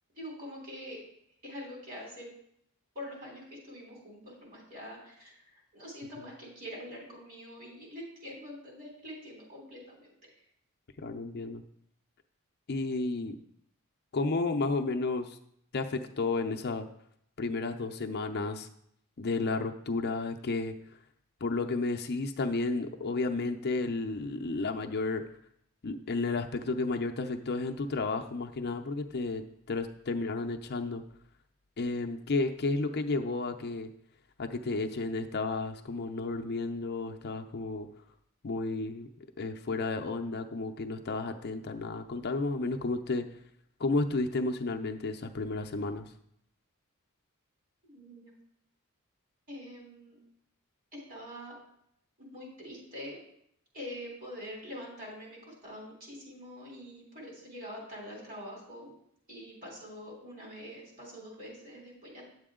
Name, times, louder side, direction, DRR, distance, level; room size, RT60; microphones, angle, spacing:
voice 1, 0.2-1.0 1.4-2.3 3.0-10.1 47.8-48.3 49.5-50.2 50.9-51.5 52.2-53.2 53.7-59.0 59.3-62.2, equal, 40° right, -2 dB, 3.5 m, -45 dB
voice 2, 11.0-11.6 12.7-13.4 14.1-15.4 15.7-16.9 17.4-18.7 19.2-20.7 21.4-25.2 25.8-29.4 29.7-31.0 31.8-33.9 34.4-37.9 38.4-39.1 39.4-43.3 43.8-46.1, left 3 dB, 50° left, 5 dB, 0.6 m, -32 dB
9.4 x 7.7 x 3.7 m, 0.72 s
head